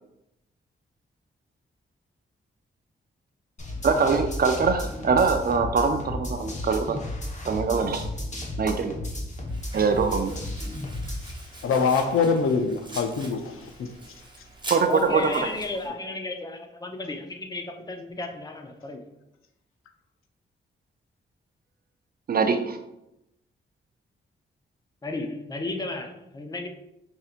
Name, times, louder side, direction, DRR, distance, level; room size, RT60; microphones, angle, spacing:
sound 1, 3.6-11.3, left 1 dB, 35° left, 1.0 m, -33 dB
voice 1, 3.8-7.0 7.5-8.1 8.6-9.0 9.7-10.4 14.7-15.5 22.3-22.8, right 5 dB, 45° right, 0.4 m, -23 dB
Domestic sounds home sounds, 9.5-15.9, right 2 dB, 20° right, 0.9 m, -43 dB
voice 2, 11.6-13.9, left 5 dB, 80° left, 0.5 m, -24 dB
voice 3, 14.9-19.0 25.0-26.7, left 2 dB, 20° left, 0.5 m, -33 dB
5.5 x 2.7 x 2.4 m
cardioid pair, 60°, 21 cm